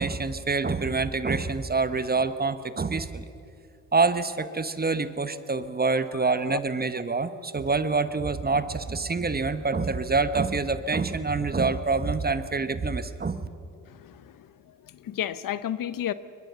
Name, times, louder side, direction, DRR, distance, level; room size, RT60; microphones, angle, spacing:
voice 1, 0.0-3.2 3.9-13.5, right 4 dB, 25° right, 12 dB, 1.3 m, -26 dB
voice 2, 13.9-14.3 15.0-16.1, left 11 dB, 60° left, 15 dB, 0.9 m, -31 dB
22.0 x 20.5 x 7.1 m, 2.4 s
supercardioid pair, 65°, 38 cm